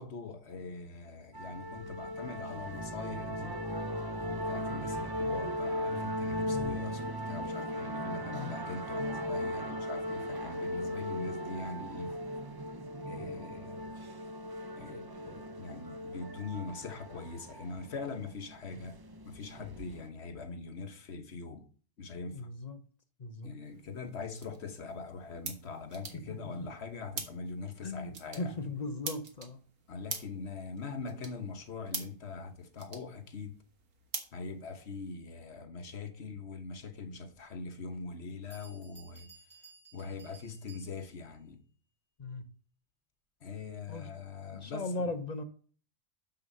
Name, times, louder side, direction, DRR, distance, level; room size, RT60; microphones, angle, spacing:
voice 1, 0.0-3.5 4.2-12.1 13.0-14.0 14.8-19.0 19.2-21.6 22.0-22.5 23.4-28.6 29.9-33.5 34.3-39.3 39.9-41.6 43.4-45.1, left 4 dB, 60° left, 1.3 m, -42 dB
sound 1, 1.3-20.1, equal, 35° right, 0.3 m, -38 dB
voice 2, 6.4-6.7 8.3-8.6 22.3-22.8 23.2-23.5 27.8-29.6 42.2-42.5 43.9-44.1 44.5-45.4, left 2 dB, 35° left, 0.9 m, -38 dB
sound 2, 23.6-35.1, right 5 dB, 90° right, 1.7 m, -46 dB
Bell, 38.1-38.2 38.5-41.3, right 4 dB, 20° right, 3.7 m, -57 dB
7.0 x 6.5 x 5.4 m
omnidirectional pair, 1.3 m